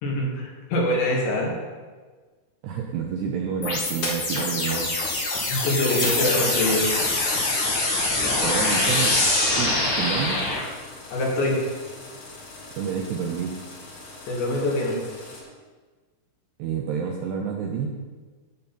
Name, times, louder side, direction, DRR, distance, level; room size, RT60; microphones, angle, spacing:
voice 1, 0.0-1.5 5.5-6.9 11.1-11.6 14.3-15.0, left 1 dB, 65° left, -3 dB, 4.3 m, -24 dB
voice 2, 2.6-4.9 8.4-9.3 9.6-10.4 12.8-13.6 16.6-18.0, right 7 dB, 80° right, 1 dB, 2.5 m, -29 dB
sound 1, 3.6-10.6, left 2 dB, 45° left, 3.1 m, -24 dB
sound 2, 6.8-15.4, left 2 dB, 90° left, 6.5 m, -43 dB
13.5 x 8.3 x 4.3 m, 1.4 s
omnidirectional pair, 5.6 m